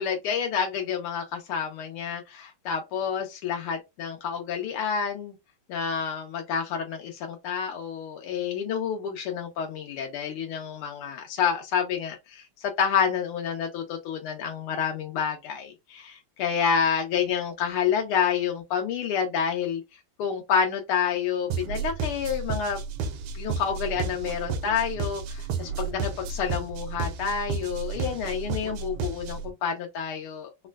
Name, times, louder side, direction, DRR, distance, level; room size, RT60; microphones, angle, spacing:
voice 1, 0.0-5.4 5.7-19.8 20.2-22.8 23.3-30.5, left 7 dB, 85° left, 1.7 m, -29 dB
sound 1, 21.5-29.5, right 5 dB, 85° right, 1.5 m, -32 dB
4.1 x 2.1 x 2.3 m
omnidirectional pair, 2.3 m